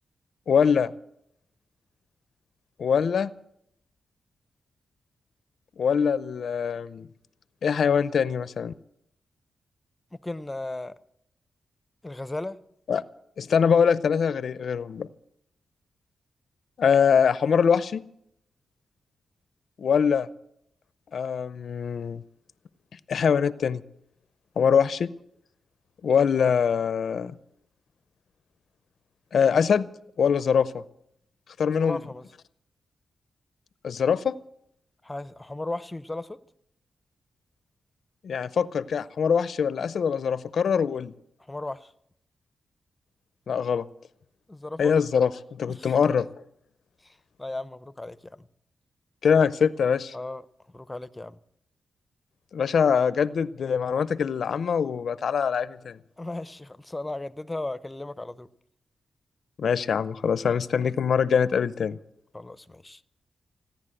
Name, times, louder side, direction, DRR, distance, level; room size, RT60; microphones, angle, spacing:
voice 1, 0.5-0.9 2.8-3.3 5.8-7.1 7.6-8.7 12.9-13.0 13.4-15.1 16.8-18.0 19.8-20.3 21.1-22.2 23.1-23.8 24.6-25.1 26.0-27.3 29.3-29.9 30.2-30.8 31.6-32.0 33.8-34.4 38.2-41.1 43.5-43.9 44.8-45.3 45.6-46.3 49.2-50.1 52.5-56.0 59.6-61.9, left 7 dB, 70° left, 0.6 m, -23 dB
voice 2, 10.1-10.9 12.0-12.6 31.7-32.3 35.0-36.4 41.4-41.9 44.5-44.9 45.7-45.9 47.0-48.5 50.1-50.4 50.7-51.4 56.2-58.5 62.3-63.0, left 2 dB, 15° left, 0.7 m, -36 dB
16.5 x 10.5 x 7.7 m
cardioid pair, 75°, 0 cm